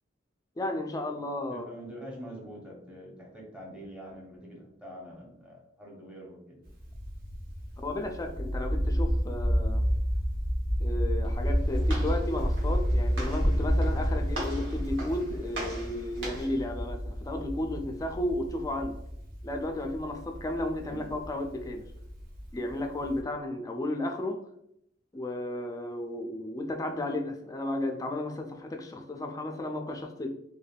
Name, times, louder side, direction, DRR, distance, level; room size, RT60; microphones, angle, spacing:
voice 1, 0.6-1.6 7.8-9.8 10.8-19.0 19.4-21.9 22.5-24.4 25.1-30.3, left 1 dB, 20° left, 3 dB, 0.3 m, -33 dB
voice 2, 1.5-6.6 20.9-21.1, equal, 5° right, -4 dB, 0.8 m, -45 dB
sound 1, 6.6-23.2, equal, 50° right, 0.6 m, -30 dB
Walk footsteps, 11.2-16.6, equal, 85° right, 0.9 m, -36 dB
3.3 x 2.2 x 2.3 m, 0.75 s
head